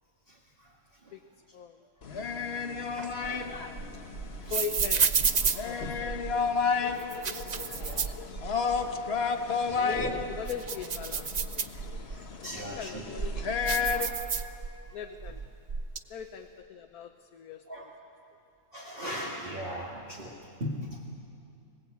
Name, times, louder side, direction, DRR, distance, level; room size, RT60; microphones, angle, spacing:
voice 1, 0.3-0.7 1.0-1.1 2.9-3.5 7.3-7.4 7.8-8.0 8.8-9.0 9.3-10.2 12.1-13.0 13.9-14.2 17.7-17.9 18.7-20.3 20.6-21.2, equal, 35° right, -4 dB, 2.4 m, -40 dB
voice 2, 1.5-1.9 4.5-5.2 5.6-6.6 7.2-8.1 9.7-11.5 12.4-14.2 14.9-15.4 16.1-17.9, left 7 dB, 65° left, 4 dB, 1.3 m, -41 dB
sound 1, 2.0-14.1, left 5 dB, 45° left, 1.2 m, -32 dB
sound 2, 3.0-6.4 7.0-8.8 9.2-9.3 9.8-12.2 12.7-14.9 15.2-16.0, right 6 dB, 50° right, 0.5 m, -31 dB
25.0 x 18.5 x 8.4 m, 2.5 s
omnidirectional pair, 1.7 m